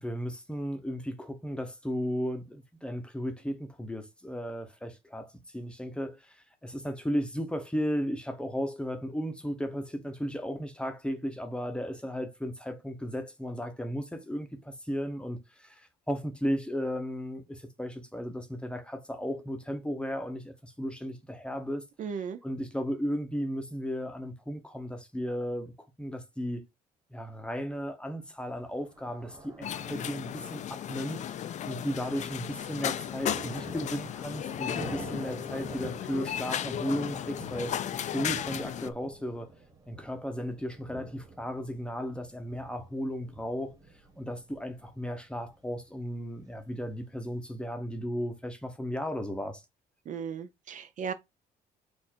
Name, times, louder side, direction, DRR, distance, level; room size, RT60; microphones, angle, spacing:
voice 1, 0.0-21.9 22.4-26.6 27.1-37.8 38.1-39.5 39.9-43.8 44.2-49.6, equal, 5° left, 0.8 m, -35 dB
voice 2, 22.0-22.4 50.1-51.1, right 7 dB, 50° right, 0.5 m, -36 dB
Thunder, 28.5-47.4, right 2 dB, 20° right, 1.5 m, -48 dB
sound 1, 29.6-38.9, left 10 dB, 45° left, 0.4 m, -35 dB
4.4 x 2.5 x 4.4 m
cardioid pair, 110°, 17 cm